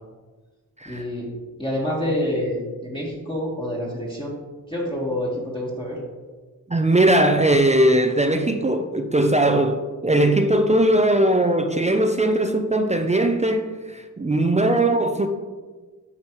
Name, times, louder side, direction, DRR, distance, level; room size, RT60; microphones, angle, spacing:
voice 1, 0.8-1.3 1.6-4.4 4.7-6.0, left 1 dB, 15° left, 1.5 m, -27 dB
voice 2, 6.7-15.3, right 1 dB, 20° right, 0.4 m, -19 dB
8.7 x 5.0 x 3.0 m
wide cardioid pair, 80°, 36 cm